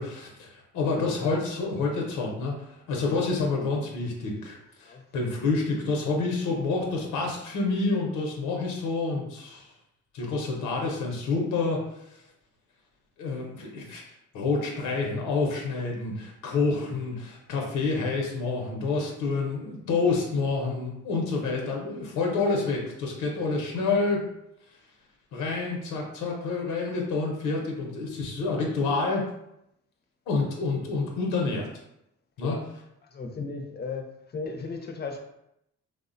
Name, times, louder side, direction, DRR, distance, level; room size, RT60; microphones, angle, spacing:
voice 1, 0.0-2.5 2.9-9.7 10.1-11.8 13.2-14.0 14.3-24.2 25.3-29.2 30.3-31.7 32.4-32.6, left 3 dB, 90° left, 0.7 m, -28 dB
voice 2, 33.1-34.0 34.3-35.2, left 4 dB, 35° left, 0.5 m, -35 dB
3.3 x 2.1 x 2.5 m
cardioid pair, 90°, 30 cm